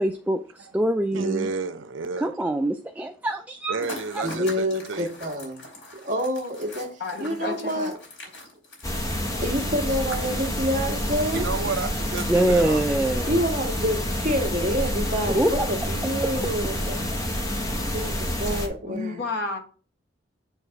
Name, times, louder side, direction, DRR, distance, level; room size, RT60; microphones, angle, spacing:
voice 1, 0.0-1.5 2.2-3.8 4.1-4.2 12.3-13.4 15.3-15.9, right 1 dB, 10° right, 0.3 m, -24 dB
voice 2, 1.1-2.3 3.7-5.1 9.2-9.3 11.3-12.8, right 4 dB, 85° right, 0.7 m, -31 dB
sound 1, 3.8-13.5, left 1 dB, 80° left, 3.0 m, -43 dB
voice 3, 4.2-5.6 6.0-7.9 9.4-11.5 13.3-17.0 17.9-19.2, equal, 40° right, 1.6 m, -27 dB
voice 4, 7.0-8.0 18.8-19.6, left 3 dB, 60° left, 1.3 m, -31 dB
sound 2, 8.8-18.7, equal, 15° left, 0.9 m, -28 dB
7.2 x 3.3 x 5.8 m
head